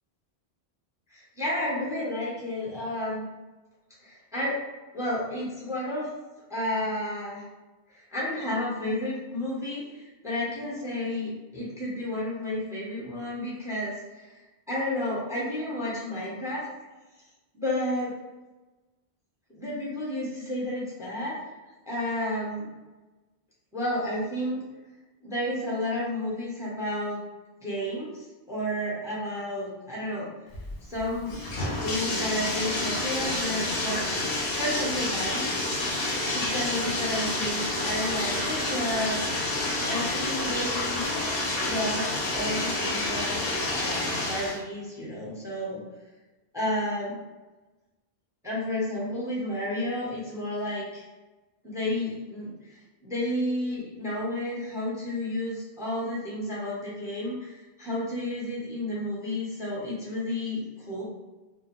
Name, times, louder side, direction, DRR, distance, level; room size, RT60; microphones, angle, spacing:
voice 1, 1.1-3.2 4.0-4.6 4.9-6.1 6.5-7.4 7.9-14.4 14.7-16.7 17.5-18.1 19.6-21.4 21.9-22.7 23.7-24.6 25.2-27.2 27.6-28.1 28.5-30.3 30.9-31.5 31.8-34.0 34.5-35.5 36.3-39.2 39.9-41.2 41.6-43.3 43.7-45.8 46.5-47.2 48.4-51.0 51.6-61.0, left 1 dB, 5° right, -6 dB, 0.5 m, -31 dB
Bathtub (filling or washing), 30.5-44.6, left 2 dB, 65° left, 0.8 m, -29 dB
2.4 x 2.0 x 2.9 m, 1.1 s
omnidirectional pair, 1.1 m